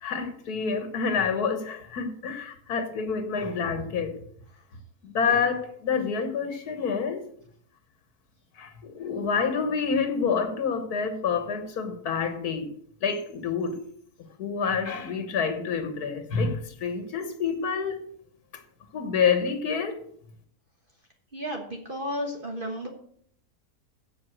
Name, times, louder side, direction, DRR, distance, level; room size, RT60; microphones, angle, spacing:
voice 1, 0.0-4.2 5.0-7.3 8.6-12.7 13.0-13.8 14.4-18.0 18.9-20.0, left 5 dB, 75° left, 1.7 m, -28 dB
voice 2, 21.3-22.9, equal, 35° right, 1.5 m, -33 dB
7.8 x 7.4 x 7.7 m
omnidirectional pair, 1.6 m